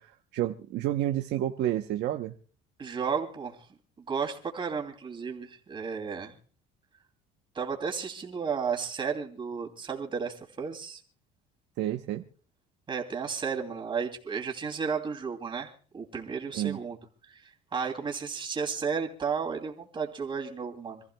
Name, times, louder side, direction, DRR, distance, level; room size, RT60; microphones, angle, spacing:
voice 1, 0.0-2.3 11.8-12.2 16.5-16.8, right 13 dB, 55° right, 5 dB, 0.9 m, -30 dB
voice 2, 2.8-3.6 4.1-6.4 7.5-11.0 12.9-17.0 17.3-17.4 17.7-21.1, right 6 dB, 25° right, 1 dB, 2.8 m, -33 dB
27.0 x 15.0 x 2.3 m, 0.41 s
cardioid pair, 145°, 21 cm